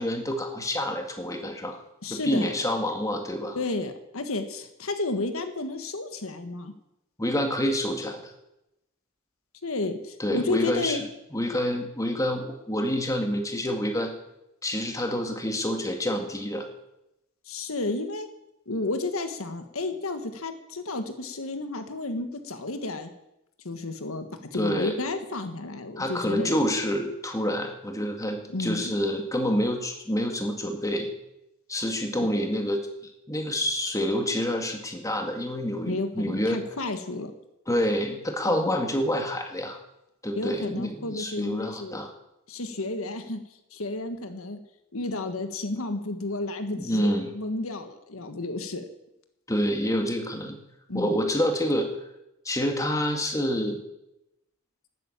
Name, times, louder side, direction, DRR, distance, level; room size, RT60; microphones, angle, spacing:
voice 1, 0.0-1.8 2.1-3.6 7.2-8.3 10.2-11.0 11.3-14.1 14.6-16.7 24.5-24.9 26.0-31.1 31.7-32.9 33.3-36.6 37.7-39.8 40.2-42.1 46.8-47.3 49.5-50.6 50.9-51.9 52.5-53.8, equal, 15° left, 3 dB, 2.0 m, -27 dB
voice 2, 2.0-2.5 3.5-6.7 9.6-11.0 17.4-18.3 18.6-23.1 23.6-26.6 28.5-28.9 32.2-32.3 35.9-37.3 38.5-38.7 40.4-42.0 42.5-43.4 43.7-44.6 44.9-48.8 50.9-51.2, left 2 dB, 80° left, 8 dB, 1.5 m, -32 dB
12.5 x 9.5 x 8.8 m, 0.87 s
head